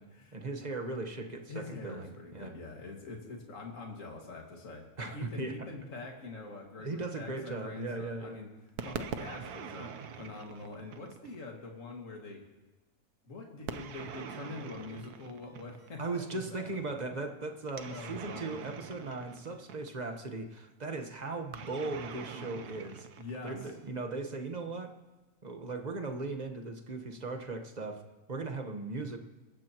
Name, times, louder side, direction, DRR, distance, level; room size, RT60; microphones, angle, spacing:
voice 1, 0.3-2.5 5.0-5.6 6.8-8.4 16.0-23.1 23.4-24.9 25.4-29.2, right 3 dB, 30° right, 5 dB, 1.2 m, -38 dB
voice 2, 1.5-8.5 8.8-9.9 10.2-12.4 13.3-16.8 17.9-18.5 23.2-23.6, left 3 dB, 55° left, 0 dB, 2.5 m, -44 dB
sound 1, 8.8-11.4 13.7-16.0 17.7-20.1 21.5-24.0, right 7 dB, 85° right, 1.4 m, -43 dB
27.0 x 14.5 x 3.0 m, 1.2 s
omnidirectional pair, 1.6 m